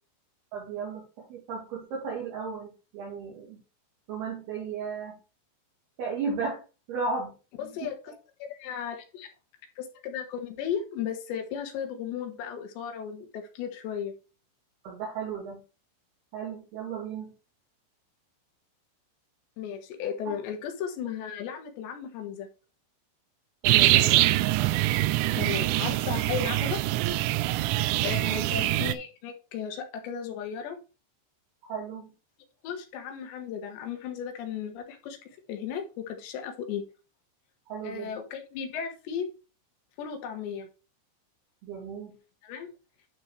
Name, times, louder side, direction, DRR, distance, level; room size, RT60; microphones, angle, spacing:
voice 1, 0.5-1.0 1.3-2.7 2.9-3.6 4.1-5.2 6.0-6.6 6.9-7.3 14.8-15.6 16.3-17.3 23.6-24.1 28.2-28.4 31.7-32.0 37.7-38.1 41.6-42.2, right 5 dB, 60° right, -4 dB, 3.6 m, -34 dB
voice 2, 7.6-8.1 8.4-9.3 9.8-14.1 19.6-22.5 23.8-24.2 25.3-26.8 28.0-30.8 32.6-35.2 35.5-36.8 37.8-39.3 40.0-40.7 42.4-42.7, left 8 dB, 70° left, 4 dB, 3.4 m, -35 dB
sound 1, 23.7-28.9, right 16 dB, 85° right, 2.8 m, -24 dB
11.5 x 4.6 x 3.3 m, 0.32 s
omnidirectional pair, 5.5 m